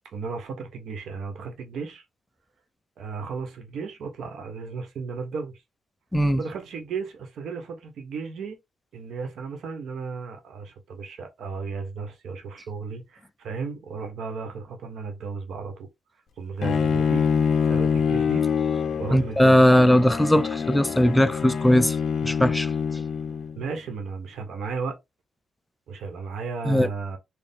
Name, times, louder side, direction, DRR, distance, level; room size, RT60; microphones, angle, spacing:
voice 1, 0.1-2.0 3.0-5.6 6.4-8.6 8.9-15.9 16.4-18.5 19.0-19.6 23.6-25.0 25.9-27.2, right 5 dB, 70° right, 1.2 m, -34 dB
Bowed string instrument, 16.6-23.7, left 6 dB, 55° left, 0.6 m, -25 dB
voice 2, 19.1-22.0 22.2-22.7 26.7-26.9, equal, 5° left, 0.4 m, -19 dB
4.5 x 2.4 x 3.6 m
cardioid pair, 90°, 0 cm